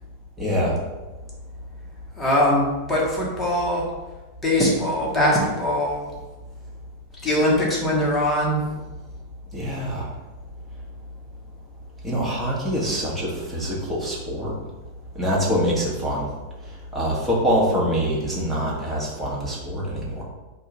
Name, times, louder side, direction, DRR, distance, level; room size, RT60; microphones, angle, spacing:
voice 1, 0.4-0.8 9.5-10.0 12.0-14.5 15.1-16.3 16.9-20.2, equal, 5° right, -6 dB, 1.4 m, -24 dB
voice 2, 2.2-3.8 4.4-6.1 7.2-8.8, left 1 dB, 15° left, -4 dB, 1.3 m, -21 dB
3.7 x 2.6 x 4.6 m, 1.2 s
figure-of-eight pair, 90°, 0 cm